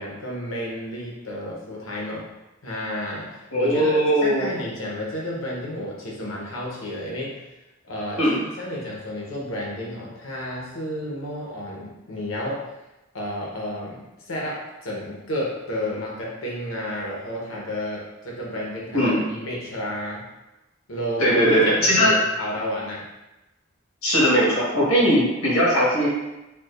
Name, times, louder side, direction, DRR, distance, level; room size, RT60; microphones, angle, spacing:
voice 1, 0.0-2.3 2.6-7.4 7.8-12.6 13.1-20.3 20.9-23.1, equal, 75° left, -3 dB, 0.9 m, -31 dB
voice 2, 3.5-4.5 8.2-8.4 18.9-19.2 21.2-22.1 24.0-26.1, equal, 90° left, -6 dB, 1.4 m, -19 dB
4.6 x 2.3 x 2.5 m, 0.99 s
head